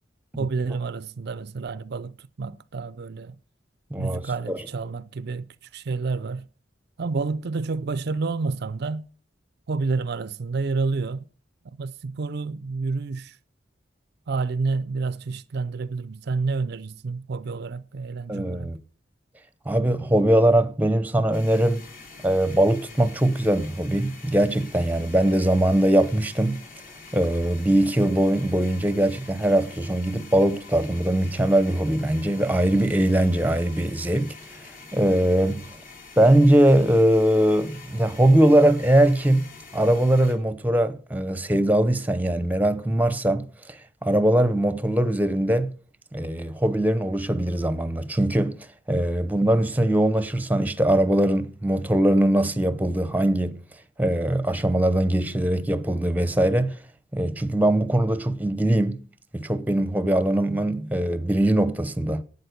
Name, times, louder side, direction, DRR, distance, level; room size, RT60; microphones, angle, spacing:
voice 1, 0.4-3.4 4.0-6.5 7.0-9.1 9.7-11.3 11.8-13.4 14.3-18.7, right 4 dB, 60° right, 0.5 m, -29 dB
voice 2, 18.3-18.8 19.7-21.9 22.2-26.6 27.1-34.3 34.9-35.6 36.2-43.8 44.0-45.7 46.1-53.6 54.0-56.8 57.1-59.0 59.3-62.2, right 1 dB, 10° right, 0.8 m, -21 dB
sound 1, 21.3-40.3, left 4 dB, 50° left, 3.1 m, -45 dB
11.5 x 8.5 x 6.5 m
head